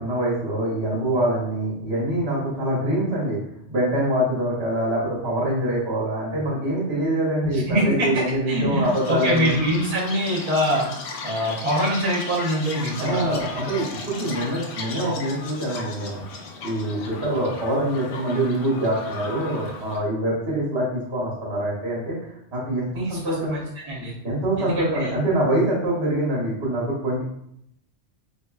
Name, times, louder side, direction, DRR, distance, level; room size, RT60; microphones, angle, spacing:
voice 1, 0.0-3.4 3.7-9.5 13.0-16.2 16.6-22.2 22.5-23.5 24.2-27.2, right 1 dB, 60° right, -6 dB, 1.3 m, -24 dB
voice 2, 7.4-10.9 11.2-13.4 23.0-24.1 24.6-25.1, equal, 35° right, -8 dB, 0.8 m, -24 dB
Chirp tweet, 8.8-20.0, left 3 dB, 65° left, 0.8 m, -36 dB
4.2 x 2.6 x 2.2 m, 0.73 s
omnidirectional pair, 1.2 m